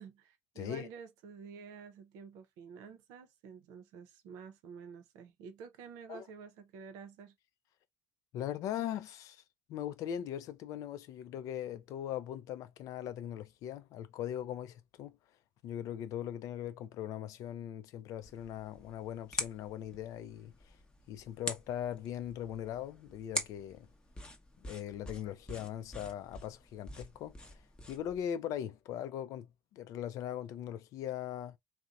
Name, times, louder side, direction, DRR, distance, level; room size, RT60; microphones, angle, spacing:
voice 1, 0.0-7.3, right 6 dB, 80° right, 0.6 m, -50 dB
voice 2, 0.6-0.9 6.1-6.2 8.3-9.4 9.7-15.2 15.6-20.5 21.1-23.9 24.6-27.3 27.9-31.6, left 10 dB, 70° left, 0.4 m, -40 dB
sound 1, 18.2-28.2, left 1 dB, 15° left, 0.8 m, -45 dB
2.7 x 2.0 x 2.3 m
supercardioid pair, 75°, 6 cm